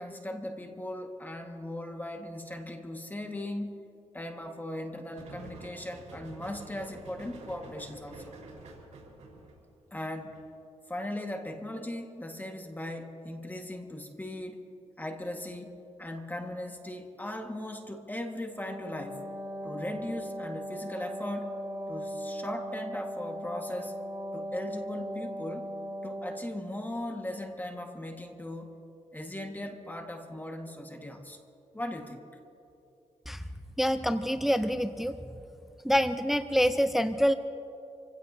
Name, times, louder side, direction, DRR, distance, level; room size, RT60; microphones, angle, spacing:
voice 1, 0.0-3.8 4.1-8.4 9.9-10.4 10.9-14.6 15.0-19.2 19.6-21.6 21.9-24.0 24.3-25.7 26.0-28.8 29.1-31.4 31.7-32.2, left 1 dB, 15° left, 3 dB, 1.7 m, -38 dB
sound 1, 5.1-10.5, right 3 dB, 80° right, 4.5 m, -48 dB
Wind instrument woodwind instrument, 18.5-26.5, equal, 30° right, 3.6 m, -38 dB
voice 2, 33.8-35.2 35.8-37.3, equal, ahead, 10 dB, 0.6 m, -26 dB
27.5 x 16.5 x 2.8 m, 2.8 s
cardioid pair, 70°, 12 cm